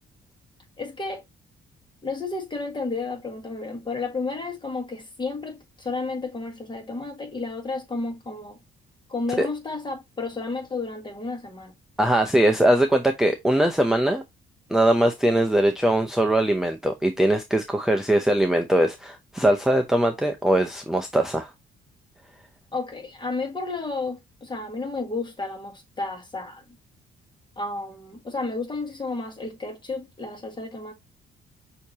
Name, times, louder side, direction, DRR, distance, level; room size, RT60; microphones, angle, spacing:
voice 1, 0.8-1.2 2.0-8.6 9.1-11.7 22.7-26.6 27.6-30.9, left 3 dB, 25° left, 1.6 m, -32 dB
voice 2, 12.0-14.2 14.7-21.5, right 1 dB, ahead, 0.6 m, -21 dB
6.3 x 2.9 x 2.7 m
cardioid pair, 90°, 20 cm